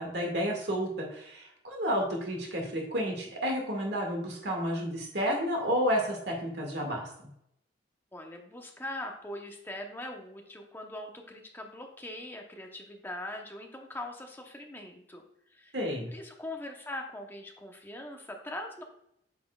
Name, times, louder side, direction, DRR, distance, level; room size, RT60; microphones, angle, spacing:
voice 1, 0.0-7.1 15.7-16.1, equal, 65° right, 1 dB, 2.0 m, -31 dB
voice 2, 8.1-15.2 15.5-15.7 16.1-18.8, left 1 dB, 10° left, 2 dB, 0.9 m, -41 dB
8.8 x 6.0 x 2.4 m, 0.75 s
head